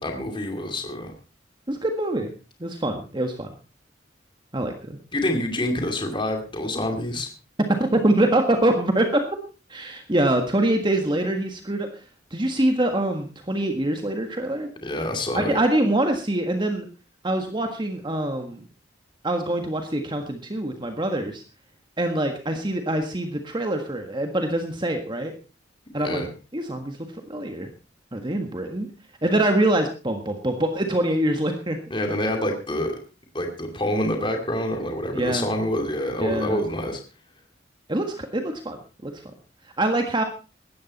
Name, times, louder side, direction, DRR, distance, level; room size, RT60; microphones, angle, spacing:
voice 1, 0.0-1.1 5.1-7.3 14.8-15.6 26.0-26.3 31.9-33.0 33.3-37.0, left 1 dB, 25° left, 3 dB, 2.5 m, -27 dB
voice 2, 1.7-2.3 2.6-3.5 4.5-5.0 7.7-9.2 9.7-12.0 12.3-14.7 15.3-16.9 17.2-18.6 19.2-21.4 22.0-25.3 25.9-26.2 26.5-27.7 28.1-28.9 29.2-31.8 35.1-35.5 36.2-36.6 37.9-39.2 39.8-40.2, right 1 dB, 25° right, 5 dB, 1.6 m, -24 dB
17.0 x 13.5 x 4.2 m, 0.34 s
head